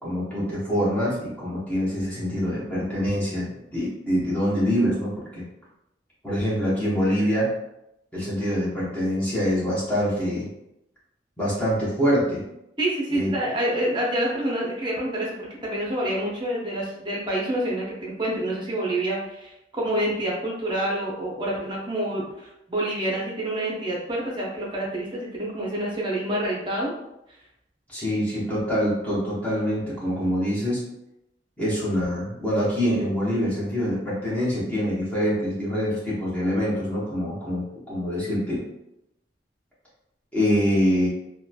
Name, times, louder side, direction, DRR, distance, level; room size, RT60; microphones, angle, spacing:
voice 1, 0.0-5.4 6.2-7.5 8.1-10.5 11.4-12.4 13.1-13.3 27.9-30.8 31.6-38.6 40.3-41.1, equal, 10° left, -9 dB, 0.9 m, -25 dB
voice 2, 12.8-26.9, right 1 dB, 25° right, -4 dB, 0.6 m, -27 dB
3.0 x 2.2 x 2.3 m, 0.84 s
head